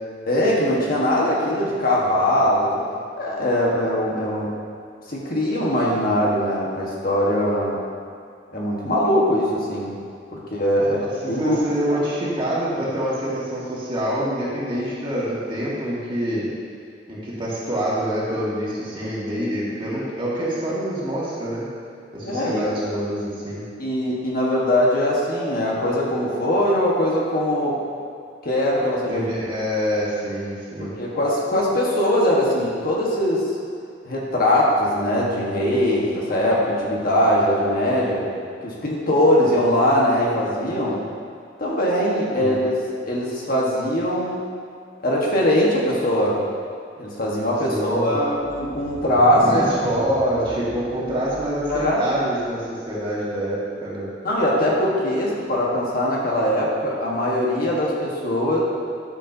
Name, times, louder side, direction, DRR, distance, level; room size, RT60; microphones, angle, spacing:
voice 1, 0.2-2.8 3.2-4.5 5.1-7.8 8.5-9.9 10.3-11.6 11.9-12.0 22.2-22.6 23.8-27.7 28.4-29.2 30.8-33.5 34.1-38.3 38.6-41.0 41.6-42.7 43.1-44.5 45.0-46.4 47.0-49.6 51.7-52.0 54.2-58.6, left 1 dB, 50° left, -4 dB, 1.5 m, -21 dB
voice 2, 11.2-16.5 17.1-21.7 22.1-23.6 29.0-30.9 42.3-42.6 47.7-48.1 49.4-54.1, equal, 30° right, -8 dB, 2.0 m, -26 dB
sound 1, 48.4-52.1, equal, 10° left, 2.2 m, -36 dB
12.0 x 7.0 x 2.8 m, 2.3 s
head